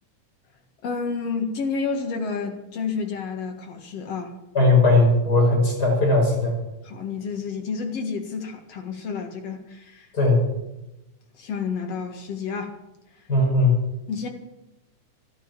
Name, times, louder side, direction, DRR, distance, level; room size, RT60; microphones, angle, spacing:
voice 1, 0.8-4.3 6.8-10.1 11.3-12.8 14.1-14.3, left 5 dB, 55° left, 4 dB, 2.6 m, -30 dB
voice 2, 4.5-6.6 10.1-10.4 13.3-13.7, left 2 dB, 30° left, -1 dB, 6.3 m, -18 dB
13.5 x 12.0 x 7.5 m, 0.95 s
omnidirectional pair, 3.7 m